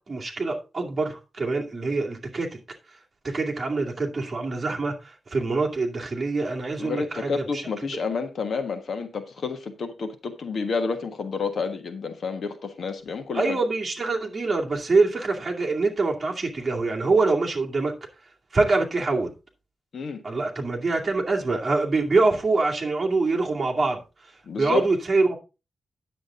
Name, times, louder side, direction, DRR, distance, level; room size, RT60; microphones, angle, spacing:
voice 1, 0.1-2.5 3.2-7.6 13.3-17.9 18.5-19.3 20.2-24.0 24.6-25.4, right 3 dB, 30° right, 2.4 m, -24 dB
voice 2, 6.8-13.6 19.9-20.2 24.5-24.8, left 5 dB, 55° left, 1.3 m, -29 dB
9.9 x 7.6 x 3.7 m
wide cardioid pair, 145°, 0 cm